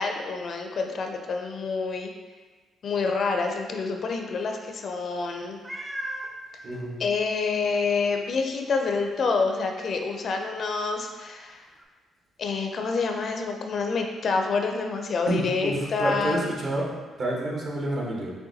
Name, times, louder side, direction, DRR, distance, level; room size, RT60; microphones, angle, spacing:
voice 1, 0.0-2.1 2.8-5.6 7.0-11.7 12.4-16.4, left 4 dB, 55° left, 4 dB, 0.4 m, -27 dB
Meow, 5.6-6.3 7.1-7.2 7.7-7.8 11.8-11.9, right 1 dB, 10° right, 0.5 m, -35 dB
voice 2, 6.6-7.0 15.3-18.3, right 1 dB, 50° right, -3 dB, 1.1 m, -29 dB
6.5 x 2.2 x 2.7 m, 1.3 s
cardioid pair, 90°, 0 cm